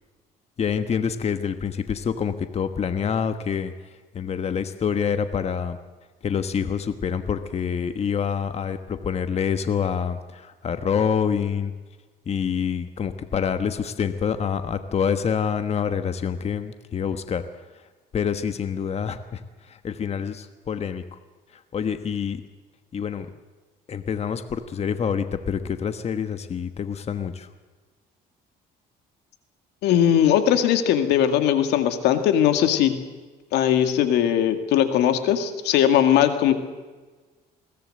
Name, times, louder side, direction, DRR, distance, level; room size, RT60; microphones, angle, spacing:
voice 1, 0.6-3.7 4.1-5.8 6.2-11.7 12.3-17.4 18.1-19.4 19.7-21.2 21.7-22.4 22.9-23.3 23.9-27.5, left 7 dB, 40° left, 9 dB, 1.3 m, -26 dB
voice 2, 29.8-32.9 33.5-36.5, left 10 dB, 85° left, 8 dB, 2.1 m, -19 dB
21.5 x 18.0 x 7.8 m, 1.3 s
cardioid pair, 110°, 17 cm